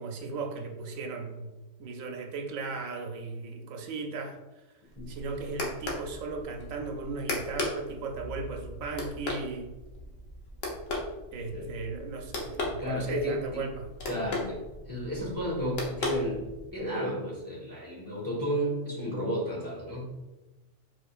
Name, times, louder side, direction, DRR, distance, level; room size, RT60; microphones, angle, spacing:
voice 1, 0.0-1.5 1.8-4.4 5.1-9.7 11.3-13.9, right 4 dB, 85° right, 3 dB, 1.1 m, -36 dB
sound 1, 4.9-16.8, left 2 dB, 70° left, 1.3 m, -37 dB
voice 2, 12.8-13.6 14.1-14.6 14.9-16.4 16.7-20.1, equal, 15° left, -5 dB, 1.4 m, -32 dB
4.7 x 4.4 x 2.4 m, 1.1 s
omnidirectional pair, 1.4 m